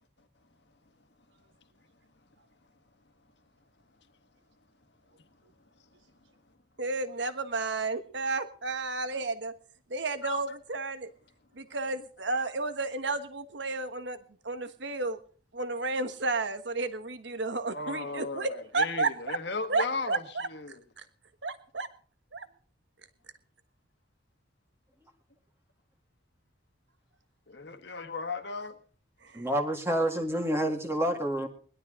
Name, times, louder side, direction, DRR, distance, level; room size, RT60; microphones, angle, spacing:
voice 1, 6.8-9.5 9.9-11.1 11.6-14.2 14.4-15.2 15.5-19.4 19.7-20.5 21.0-21.1 21.4-21.9 22.3-22.5 29.3-29.4, right 3 dB, 65° right, 1.4 m, -32 dB
voice 2, 17.7-20.2 20.5-20.8 27.5-28.8, left 3 dB, 60° left, 1.6 m, -36 dB
voice 3, 29.3-31.5, right 1 dB, 15° right, 1.9 m, -28 dB
20.5 x 12.0 x 3.8 m
head